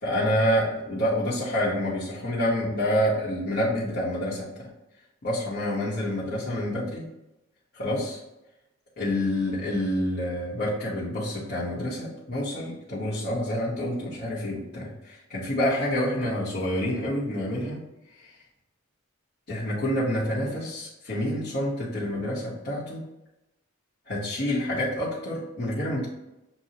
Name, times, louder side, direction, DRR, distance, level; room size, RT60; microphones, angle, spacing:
voice 1, 0.0-4.4 5.2-7.0 7.7-8.2 9.0-17.8 18.2-18.3 19.5-23.0 24.1-26.1, equal, 55° left, -10 dB, 1.3 m, -28 dB
7.0 x 2.3 x 2.9 m, 0.92 s
head